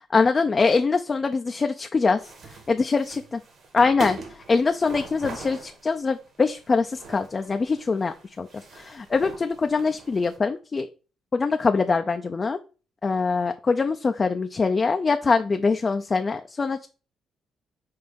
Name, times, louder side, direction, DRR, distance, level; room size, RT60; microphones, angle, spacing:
voice 1, 0.0-3.4 3.7-8.5 8.7-10.9 11.3-12.6 13.0-16.9, left 4 dB, 35° left, 6 dB, 0.5 m, -23 dB
sound 1, 2.2-10.4, right 4 dB, 60° right, 2.3 m, -42 dB
5.6 x 3.8 x 5.2 m, 0.34 s
cardioid pair, 90°, 0 cm